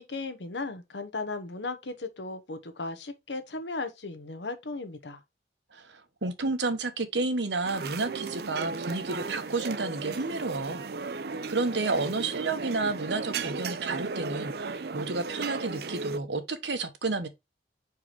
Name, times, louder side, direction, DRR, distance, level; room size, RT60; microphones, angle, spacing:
voice 1, 0.1-5.2, left 3 dB, 80° left, 1.1 m, -36 dB
voice 2, 6.2-11.1 11.5-17.3, right 3 dB, 80° right, 1.1 m, -31 dB
sound 1, 7.6-16.2, right 4 dB, 60° right, 0.5 m, -35 dB
4.8 x 4.7 x 4.6 m
head